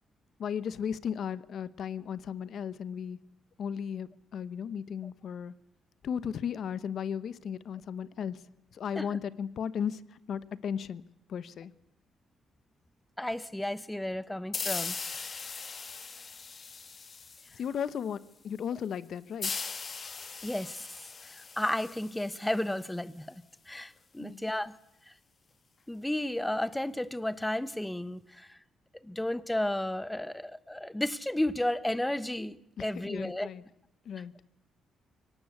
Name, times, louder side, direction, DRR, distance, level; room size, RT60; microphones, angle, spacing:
voice 1, 0.4-3.2 3.6-5.5 6.0-8.4 8.7-11.0 11.3-11.7 17.5-18.2 18.4-19.5 24.2-24.4 32.8-33.6 34.0-34.3, left 8 dB, 65° left, 1.1 m, -35 dB
voice 2, 13.2-15.0 20.4-20.9 21.2-24.7 25.9-28.6 29.0-33.5, left 1 dB, 10° left, 1.1 m, -33 dB
sound 1, 14.5-17.9 19.4-22.9, left 5 dB, 40° left, 2.1 m, -39 dB
24.0 x 18.5 x 8.2 m
cardioid pair, 90°, 0 cm